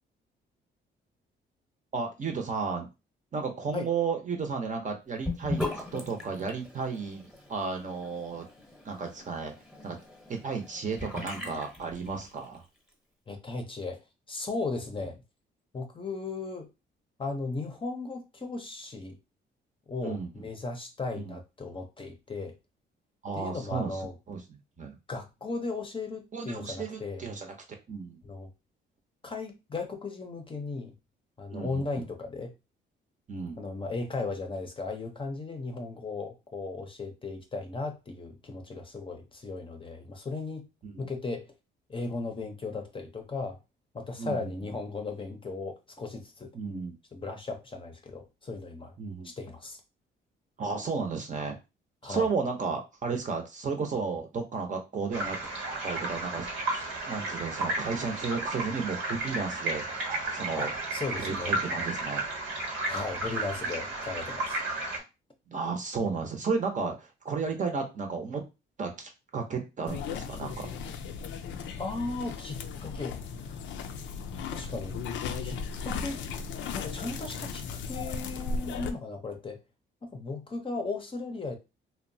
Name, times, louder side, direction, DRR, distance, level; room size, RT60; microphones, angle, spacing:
voice 1, 1.9-2.9 3.3-8.4 8.8-9.5 9.8-10.0 10.3-12.6 20.0-20.5 21.1-21.4 23.2-24.0 24.3-24.4 24.8-25.0 26.3-27.5 27.9-28.2 31.5-32.0 33.3-33.6 40.8-41.1 44.2-44.5 46.5-46.9 49.0-49.3 50.6-51.6 52.0-55.4 55.8-60.7 61.2-62.2 65.5-68.4 68.8-70.7, right 5 dB, 40° right, 4 dB, 0.7 m, -33 dB
Sink (filling or washing) / Bathtub (filling or washing), 5.2-12.6, left 2 dB, ahead, 0.9 m, -39 dB
voice 2, 13.3-14.0 14.3-15.2 15.7-16.7 17.2-19.2 19.9-22.5 23.3-24.2 25.1-27.2 28.2-28.5 29.2-30.9 31.4-32.5 33.6-40.7 41.0-41.5 41.9-43.6 43.9-46.5 47.1-48.9 49.2-49.8 52.0-52.3 60.5-61.5 62.8-64.6 71.8-73.2 73.4-73.6 74.5-75.0 75.4-76.2 76.7-79.6 80.0-81.6, left 3 dB, 25° left, 4 dB, 0.6 m, -36 dB
sound 1, 55.1-65.0, right 2 dB, 85° right, 1.1 m, -33 dB
sound 2, 69.9-78.9, left 5 dB, 70° left, 0.4 m, -36 dB
2.8 x 2.1 x 2.6 m, 0.26 s
cardioid pair, 90°, 20 cm